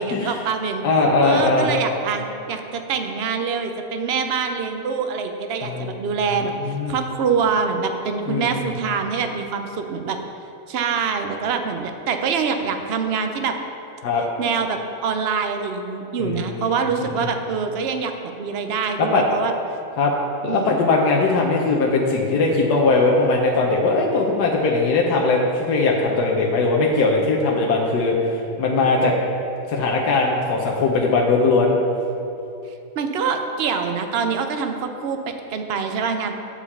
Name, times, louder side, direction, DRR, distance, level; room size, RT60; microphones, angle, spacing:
voice 1, 0.0-0.8 1.2-10.2 10.7-13.6 14.4-18.1 18.4-19.5 20.5-20.8 32.9-36.4, right 5 dB, 55° right, 6 dB, 0.7 m, -25 dB
voice 2, 0.8-1.7 5.6-6.0 6.5-6.9 8.3-8.7 14.0-14.2 16.2-16.6 17.2-17.3 19.0-19.2 20.0-20.1 20.4-29.1 29.7-31.8, left 3 dB, 85° left, -1 dB, 1.4 m, -20 dB
8.8 x 4.9 x 7.1 m, 2.9 s
omnidirectional pair, 1.7 m